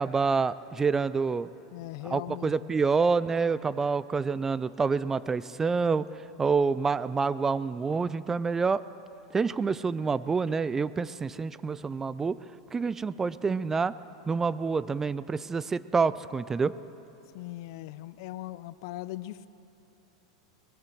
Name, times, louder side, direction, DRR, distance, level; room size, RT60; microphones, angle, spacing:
voice 1, 0.0-1.5 2.0-8.8 9.3-12.4 12.7-13.9 14.3-16.7, right 5 dB, 15° right, 17 dB, 0.3 m, -27 dB
voice 2, 1.7-2.7 17.3-19.5, left 15 dB, 65° left, 16 dB, 0.4 m, -39 dB
20.5 x 8.7 x 7.8 m, 2.9 s
hypercardioid pair, 120°, 2 cm